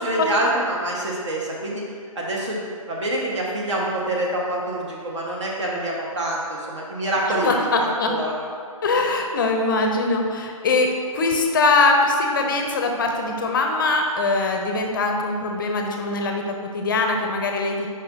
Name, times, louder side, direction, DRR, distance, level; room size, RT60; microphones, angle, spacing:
voice 1, 0.0-1.9 2.1-8.4, right 1 dB, 55° right, -3 dB, 1.4 m, -26 dB
voice 2, 7.3-8.1 8.8-17.9, left 3 dB, 35° left, 3 dB, 0.5 m, -22 dB
6.6 x 5.2 x 2.7 m, 2.2 s
hypercardioid pair, 150°, 18 cm